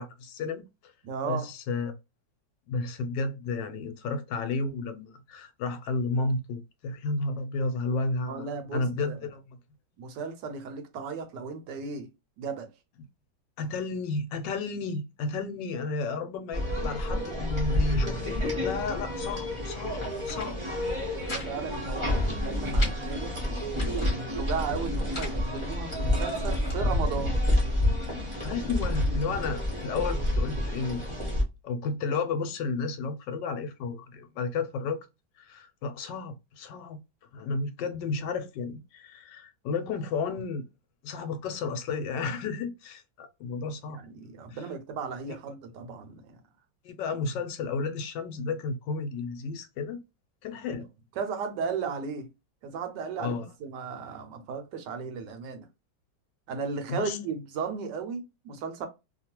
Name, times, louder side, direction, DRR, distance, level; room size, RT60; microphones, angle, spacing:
voice 1, 0.0-0.9 1.2-1.9 2.7-9.4 13.6-20.6 21.2-21.6 28.4-31.0 31.6-35.0 35.4-37.0 37.3-40.6 41.0-44.0 44.5-44.6 46.8-50.0 50.4-50.9 53.2-53.5 56.9-57.2, left 4 dB, 75° left, 1.2 m, -32 dB
voice 2, 1.0-1.5 8.3-9.2 10.0-12.1 12.4-12.7 21.3-23.3 23.9-27.4 43.9-46.4 51.2-52.3 52.6-55.7 56.5-58.9, right 5 dB, 75° right, 1.2 m, -35 dB
sound 1, 16.5-31.4, left 1 dB, 25° right, 0.7 m, -29 dB
sound 2, 20.0-20.5 20.8-21.5 21.8-21.9 22.2-23.0 23.5-24.1 24.8-25.4 26.0-26.8, left 1 dB, 35° left, 1.1 m, -40 dB
2.9 x 2.2 x 2.8 m
omnidirectional pair, 2.0 m